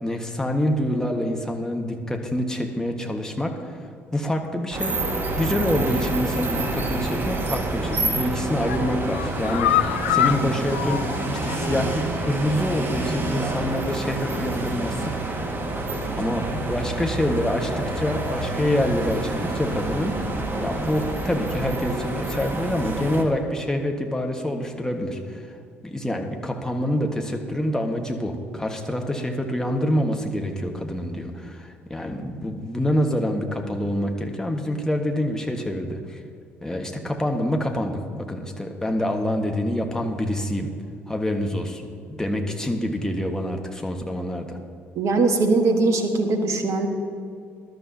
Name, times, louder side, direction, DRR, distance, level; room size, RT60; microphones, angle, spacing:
voice 1, 0.0-3.8 4.1-5.0 5.3-11.0 11.3-15.4 16.2-25.5 25.8-36.2 36.6-40.7 41.1-44.6, left 1 dB, 10° left, 3 dB, 1.5 m, -26 dB
sound 1, 4.7-23.2, right 2 dB, 35° right, 1.8 m, -28 dB
sound 2, 7.7-8.1 8.5-11.9 12.2-12.3 12.7-12.8, left 11 dB, 75° left, 0.4 m, -26 dB
voice 2, 44.9-46.9, right 3 dB, 50° right, 5 dB, 1.5 m, -21 dB
19.0 x 12.0 x 2.8 m, 2.3 s
figure-of-eight pair, 50°, 6 cm